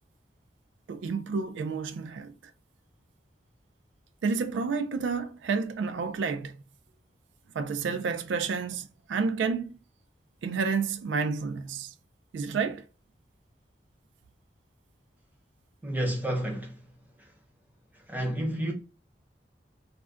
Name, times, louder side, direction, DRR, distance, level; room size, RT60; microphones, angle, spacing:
voice 1, 0.9-2.3 4.2-6.6 7.5-9.8 10.4-11.9 12.3-12.8, right 5 dB, 90° right, 0.3 m, -30 dB
voice 2, 15.8-16.8 18.1-18.7, right 1 dB, 10° right, 0.6 m, -30 dB
2.4 x 2.1 x 3.5 m
head